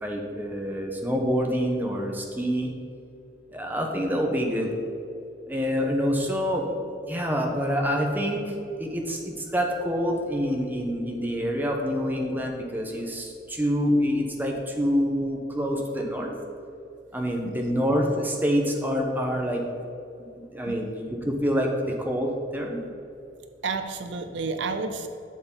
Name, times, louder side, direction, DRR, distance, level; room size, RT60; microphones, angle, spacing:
voice 1, 0.0-2.7 3.5-4.7 5.5-6.6 7.1-8.4 8.8-16.3 17.1-19.6 20.5-22.8, equal, 10° right, 1 dB, 1.1 m, -26 dB
voice 2, 23.6-25.1, right 4 dB, 70° right, 7 dB, 0.6 m, -31 dB
11.5 x 6.9 x 4.0 m, 2.6 s
head